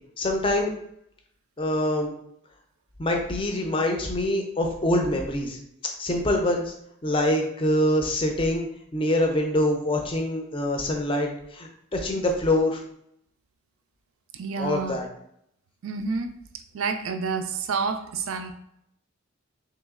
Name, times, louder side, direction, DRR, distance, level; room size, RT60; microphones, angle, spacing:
voice 1, 0.2-0.7 1.6-2.1 3.0-5.6 6.0-6.7 7.0-8.7 8.9-12.8 14.6-15.1, left 1 dB, 25° left, 0.5 m, -25 dB
voice 2, 14.3-15.0 15.8-16.4 16.7-18.5, right 5 dB, 70° right, 0.4 m, -29 dB
3.0 x 2.9 x 3.6 m
head